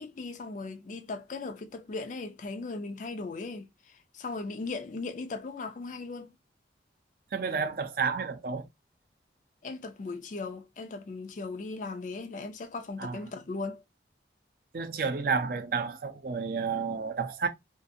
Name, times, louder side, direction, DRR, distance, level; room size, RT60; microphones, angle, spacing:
voice 1, 0.0-6.3 9.6-13.8, left 3 dB, 45° left, 0.4 m, -38 dB
voice 2, 7.3-8.7 13.0-13.2 14.7-17.5, right 5 dB, 50° right, 0.4 m, -31 dB
2.6 x 2.4 x 2.5 m
head